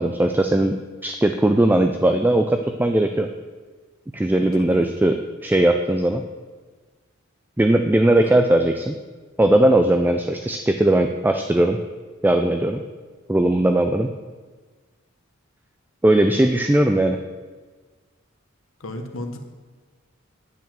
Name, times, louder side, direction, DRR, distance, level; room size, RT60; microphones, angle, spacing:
voice 1, 0.0-3.3 4.1-5.1 5.4-6.2 7.6-8.9 9.4-11.8 12.2-12.8 13.3-14.1 16.0-17.2, right 1 dB, 10° right, 6 dB, 0.4 m, -19 dB
voice 2, 18.8-19.4, left 1 dB, 75° left, 5 dB, 1.1 m, -33 dB
9.5 x 5.1 x 7.5 m, 1.4 s
head